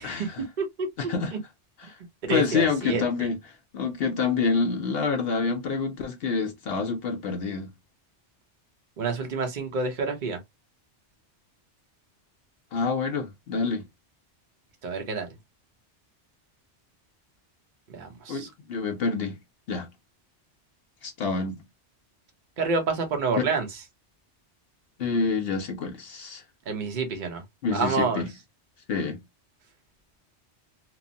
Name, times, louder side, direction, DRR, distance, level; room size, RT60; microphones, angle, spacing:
voice 1, 0.0-0.4 1.0-1.3 1.8-2.0 2.3-3.4 3.7-7.7 12.7-13.8 18.3-19.4 19.7-19.9 21.0-21.6 23.4-23.5 25.0-26.4 27.6-28.3 28.9-29.2, left 5 dB, 65° left, 0.7 m, -27 dB
voice 2, 0.6-0.9 2.2-3.3 9.0-10.4 14.8-15.3 17.9-18.5 22.6-23.8 26.7-27.4 27.7-28.2, right 4 dB, 45° right, 0.9 m, -28 dB
3.0 x 2.0 x 2.6 m
omnidirectional pair, 1.2 m